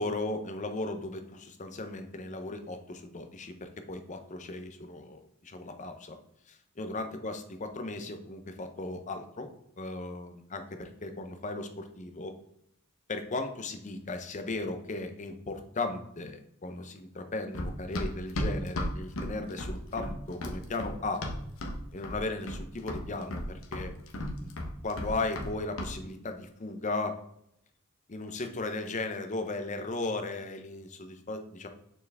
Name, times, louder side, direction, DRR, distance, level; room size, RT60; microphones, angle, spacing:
voice 1, 0.0-6.2 6.5-9.5 9.8-12.4 13.1-21.2 21.9-23.9 24.4-24.5 24.8-27.2 28.1-31.7, left 2 dB, 35° left, 7 dB, 0.7 m, -36 dB
Run, 17.5-21.8 22.0-22.6 22.9-25.5 25.8-25.9, left 1 dB, 75° left, 1.0 m, -34 dB
6.6 x 4.5 x 3.5 m, 0.76 s
head